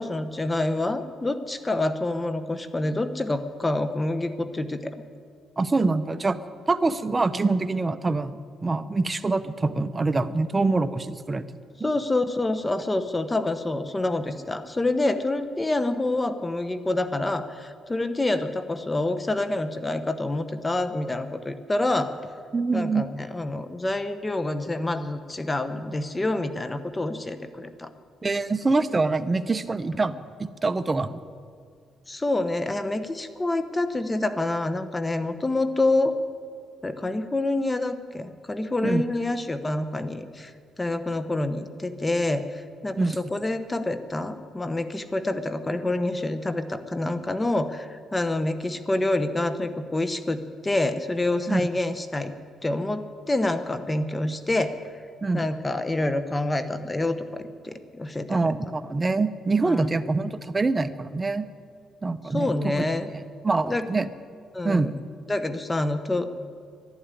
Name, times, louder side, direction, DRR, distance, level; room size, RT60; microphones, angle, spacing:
voice 1, 0.0-5.0 11.8-22.1 22.7-27.9 32.1-36.2 36.8-40.5 40.8-52.3 52.6-54.8 55.3-58.5 59.6-59.9 62.3-63.1 63.6-63.9 64.5-64.9 65.3-66.3, left 2 dB, 20° left, 11 dB, 1.1 m, -27 dB
voice 2, 5.6-6.4 6.7-8.4 8.6-11.5 11.8-11.9 22.5-23.0 28.2-31.2 38.8-39.0 43.0-43.2 51.5-51.6 55.2-55.5 58.3-61.5 62.0-62.9 63.4-64.1 64.6-65.0, right 3 dB, 25° right, 12 dB, 0.7 m, -25 dB
11.5 x 11.5 x 9.9 m, 2.2 s
cardioid pair, 90°, 0 cm